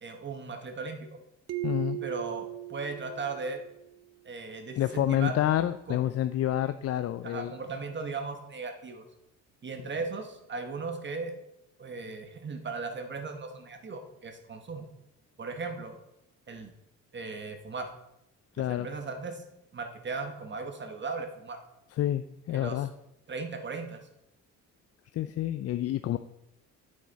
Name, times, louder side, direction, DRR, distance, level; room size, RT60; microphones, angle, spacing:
voice 1, 0.0-1.1 2.0-3.6 4.2-5.4 5.9-6.0 7.2-9.0 9.6-11.3 11.8-14.9 15.4-16.0 16.5-16.7 17.1-17.9 18.6-19.4 19.7-21.6 22.5-22.8 23.3-24.1, right 4 dB, 40° right, 6 dB, 1.2 m, -37 dB
sound 1, 1.5-4.0, right 17 dB, 55° right, 0.7 m, -38 dB
voice 2, 1.6-2.0 4.8-7.5 18.5-18.9 21.9-22.9 25.1-26.2, left 12 dB, 55° left, 11 dB, 0.4 m, -28 dB
8.5 x 7.5 x 4.1 m, 0.86 s
cardioid pair, 90°, 30 cm